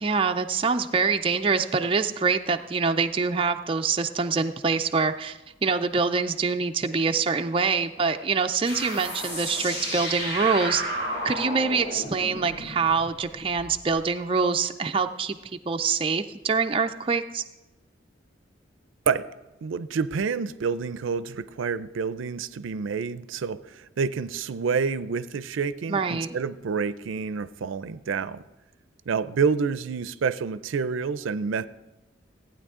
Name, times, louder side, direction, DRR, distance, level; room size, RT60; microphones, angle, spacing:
voice 1, 0.0-10.8 11.2-15.4 15.7-17.4 25.9-26.3, right 5 dB, 30° right, 6 dB, 0.4 m, -25 dB
sound 1, 8.6-13.9, equal, 75° left, 4.8 m, -33 dB
voice 2, 19.6-28.4 29.1-31.7, right 5 dB, 90° right, 15 dB, 0.4 m, -28 dB
15.0 x 9.1 x 3.7 m, 1.0 s
head